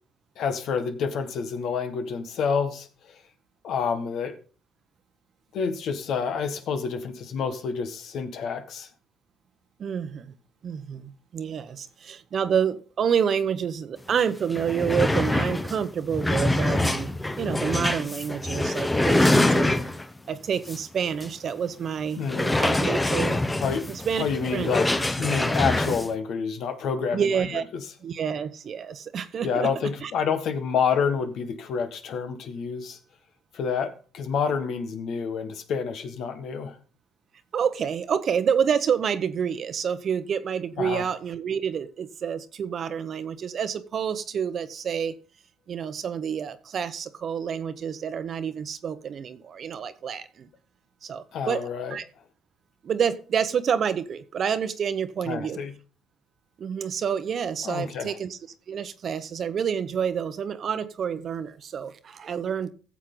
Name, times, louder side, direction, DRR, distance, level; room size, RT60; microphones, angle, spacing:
voice 1, 0.4-3.2 3.6-4.3 5.5-8.9 22.2-22.6 23.6-23.9 24.2-24.9 25.2-27.5 29.4-33.0 33.5-36.8 40.8-41.1 51.3-52.0 55.2-55.7 57.6-58.1, left 6 dB, 65° left, 8 dB, 1.5 m, -28 dB
voice 2, 9.8-10.3 10.6-17.1 17.4-19.7 20.3-22.2 22.6-23.4 23.9-24.3 24.5-24.7 27.1-27.6 28.0-29.7 30.0-30.1 37.5-45.1 45.7-50.5 51.0-52.0 52.8-55.6 56.6-58.4 58.7-62.7, right 7 dB, 50° right, 12 dB, 0.9 m, -28 dB
sound 1, 14.1-14.2 14.5-20.2 20.7-20.8 21.2-21.3 22.2-26.1, left 1 dB, 15° left, 0.8 m, -24 dB
14.0 x 7.3 x 3.9 m, 0.39 s
supercardioid pair, 85°, 0 cm